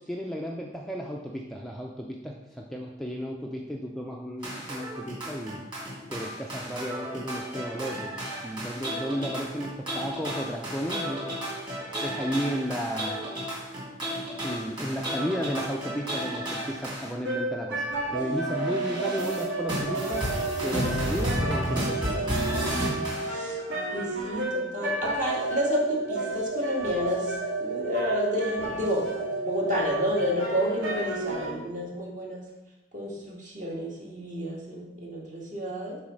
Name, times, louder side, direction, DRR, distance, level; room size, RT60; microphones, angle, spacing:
voice 1, 0.0-5.6 6.1-11.3 12.0-13.3 14.4-17.8 18.1-20.3 20.6-22.3, equal, ahead, -1 dB, 0.5 m, -33 dB
sound 1, 4.4-17.1 18.1-23.3, equal, 25° right, 2.7 m, -33 dB
sound 2, 17.2-31.5, right 2 dB, 75° right, 2.3 m, -31 dB
voice 2, 23.2-23.6 23.9-29.1 29.4-32.5 32.9-36.0, equal, 40° right, -3 dB, 2.0 m, -30 dB
7.2 x 4.1 x 6.4 m, 0.98 s
head